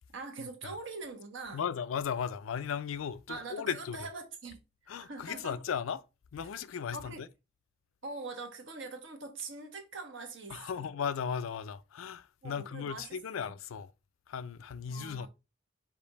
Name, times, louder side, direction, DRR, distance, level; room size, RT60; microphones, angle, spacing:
voice 1, 0.1-1.6 3.3-4.6 5.0-5.6 6.9-7.2 8.0-10.9 12.4-13.5 14.9-15.3, right 3 dB, 65° right, 1.2 m, -43 dB
voice 2, 1.5-4.0 4.9-6.0 6.3-7.3 10.5-13.9 14.3-15.3, left 7 dB, 75° left, 0.4 m, -36 dB
5.2 x 2.6 x 4.0 m
head